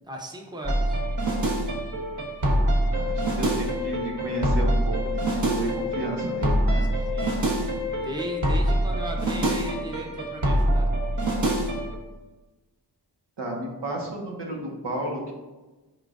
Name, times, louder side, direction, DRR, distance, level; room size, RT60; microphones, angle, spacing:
voice 1, 0.0-1.0 7.1-7.4 8.0-10.9, equal, 10° right, 1 dB, 0.9 m, -36 dB
sound 1, 0.6-12.0, right 1 dB, 45° right, 1.3 m, -25 dB
voice 2, 2.9-6.9 13.4-15.3, right 1 dB, 80° right, -1 dB, 1.4 m, -32 dB
10.5 x 3.7 x 2.5 m, 1.1 s
wide cardioid pair, 75°, 40 cm